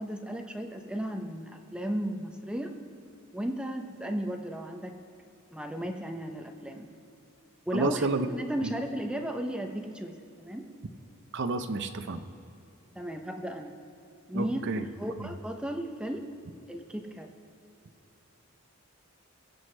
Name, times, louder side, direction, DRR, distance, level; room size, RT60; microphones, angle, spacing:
voice 1, 0.0-2.7 3.3-5.0 5.5-6.9 7.7-10.7 13.0-13.7 14.3-16.3 16.7-17.3, right 1 dB, 5° right, 4 dB, 0.6 m, -35 dB
voice 2, 7.7-8.3 8.6-8.7 11.3-12.2 14.3-14.8, right 3 dB, 60° right, 9 dB, 0.7 m, -30 dB
23.0 x 7.6 x 3.2 m, 2.7 s
head